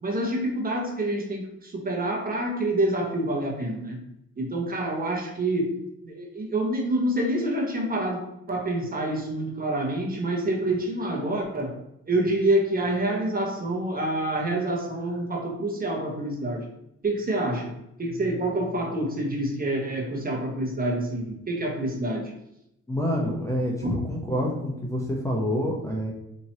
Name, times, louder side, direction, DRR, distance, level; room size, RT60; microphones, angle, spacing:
voice 1, 0.0-4.0 4.4-5.7 6.0-8.2 8.5-11.7 12.1-16.6 17.0-17.7 18.0-22.3, right 1 dB, 30° right, 0 dB, 1.1 m, -27 dB
voice 2, 22.9-26.1, equal, 10° left, -2 dB, 0.8 m, -27 dB
4.3 x 2.9 x 2.8 m, 0.82 s
cardioid pair, 90°, 30 cm